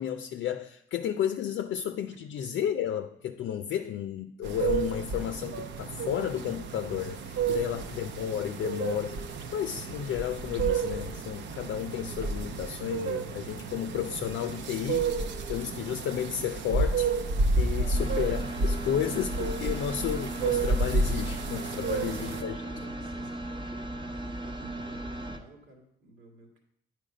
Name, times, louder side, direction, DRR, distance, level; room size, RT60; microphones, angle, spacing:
voice 1, 0.0-9.2 9.5-17.1 17.6-22.6, left 9 dB, 70° left, 0.5 m, -32 dB
sound 1, 4.4-22.4, right 3 dB, 65° right, 0.7 m, -31 dB
voice 2, 7.4-7.8 17.6-18.2 18.8-19.2 21.7-23.4 24.0-26.6, right 1 dB, 85° right, 2.0 m, -50 dB
sound 2, 17.9-25.4, right 1 dB, 25° right, 0.9 m, -37 dB
9.3 x 4.5 x 5.0 m
cardioid pair, 90°, 20 cm